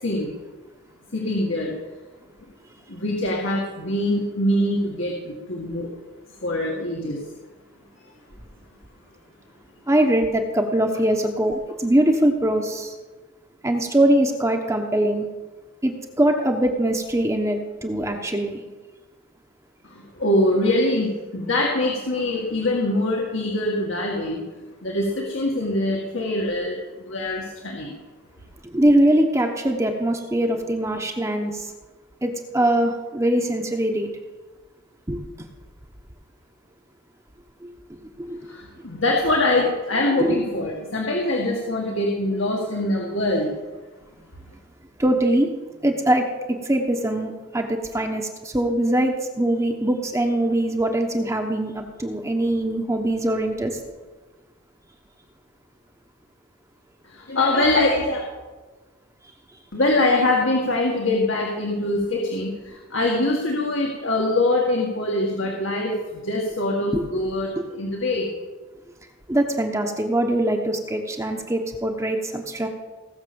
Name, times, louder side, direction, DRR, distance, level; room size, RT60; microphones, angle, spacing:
voice 1, 0.0-0.3 1.1-1.8 2.9-5.9 6.4-7.2 19.8-24.4 24.8-26.8 27.0-28.0 38.5-43.5 57.0-58.2 59.7-68.3, left 1 dB, 70° left, -1 dB, 2.0 m, -23 dB
voice 2, 9.9-12.9 13.6-15.3 15.8-18.6 28.7-31.7 32.2-34.1 35.1-35.2 37.6-37.7 38.0-38.5 40.1-40.4 45.0-45.5 45.8-53.8 57.5-57.6 66.9-67.1 69.3-72.7, right 1 dB, 15° right, 3 dB, 1.1 m, -22 dB
18.0 x 6.9 x 7.0 m, 1.3 s
head